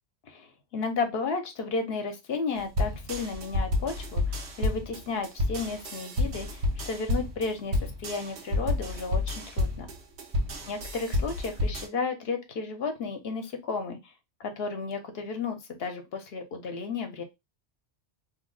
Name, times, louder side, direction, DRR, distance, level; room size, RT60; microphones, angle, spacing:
voice 1, 0.3-9.9 10.7-14.0 14.4-17.2, left 4 dB, 70° left, 6 dB, 0.9 m, -33 dB
sound 1, 2.8-11.9, left 2 dB, 80° right, 1.0 m, -30 dB
2.7 x 2.0 x 3.7 m, 0.22 s
omnidirectional pair, 1.1 m